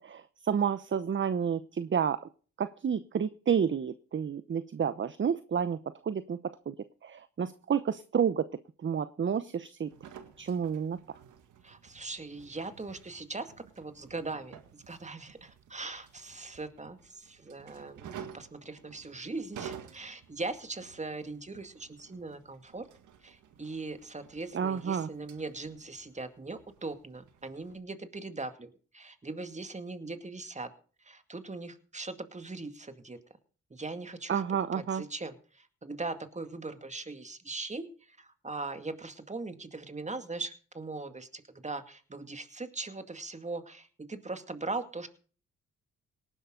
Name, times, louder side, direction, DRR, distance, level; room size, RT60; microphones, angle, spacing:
voice 1, 0.0-2.3 2.6-6.7 7.0-8.5 8.8-9.9 10.4-11.0 24.5-25.1 34.3-35.0, right 7 dB, 40° right, 14 dB, 0.9 m, -30 dB
sound 1, 9.9-27.8, right 8 dB, 75° right, 1.8 m, -52 dB
voice 2, 11.6-22.9 23.2-30.7 31.0-33.2 33.7-34.4 34.7-45.1, right 3 dB, 25° right, 9 dB, 2.2 m, -40 dB
18.5 x 11.0 x 3.9 m, 0.40 s
supercardioid pair, 60°, 30 cm